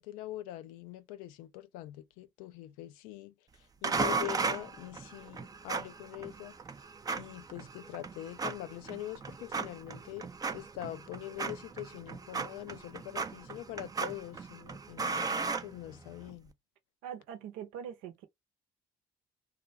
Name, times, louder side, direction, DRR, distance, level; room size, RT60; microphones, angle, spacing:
voice 1, 0.0-3.3 3.8-6.5 7.1-16.5, left 14 dB, 80° left, 0.4 m, -43 dB
sound 1, 3.8-16.3, right 4 dB, 25° right, 0.5 m, -37 dB
voice 2, 17.0-18.2, right 9 dB, 80° right, 0.8 m, -42 dB
2.4 x 2.1 x 2.6 m
hypercardioid pair, 60°, 14 cm